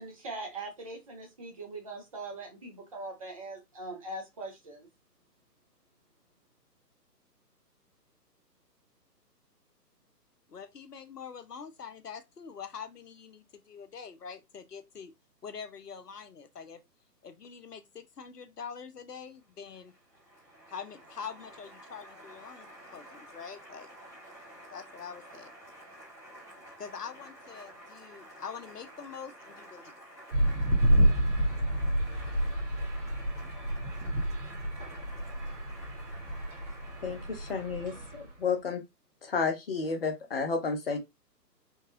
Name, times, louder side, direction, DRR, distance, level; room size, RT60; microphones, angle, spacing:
voice 1, 0.0-4.9, right 2 dB, 20° right, 0.7 m, -41 dB
voice 2, 10.5-15.1 15.4-16.8 17.2-19.9 20.7-23.9 24.7-25.5 26.8-29.9, left 6 dB, 70° left, 0.8 m, -44 dB
Applause, 19.3-38.2, right 1 dB, 5° left, 0.9 m, -51 dB
sound 1, 30.3-38.4, right 1 dB, 45° right, 1.1 m, -29 dB
voice 3, 37.0-38.8 39.2-41.0, left 5 dB, 35° left, 0.8 m, -31 dB
4.6 x 2.3 x 2.6 m
figure-of-eight pair, 135°, 50 cm